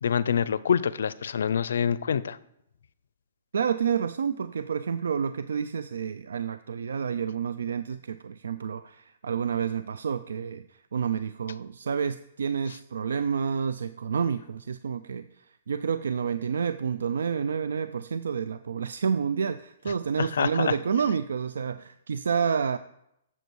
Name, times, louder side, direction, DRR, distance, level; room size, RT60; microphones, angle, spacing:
voice 1, 0.0-2.4 20.2-20.7, left 7 dB, 80° left, 0.4 m, -26 dB
voice 2, 3.5-15.3 15.7-22.8, right 6 dB, 90° right, 0.3 m, -29 dB
8.0 x 7.1 x 4.6 m
hypercardioid pair, 155°, 0 cm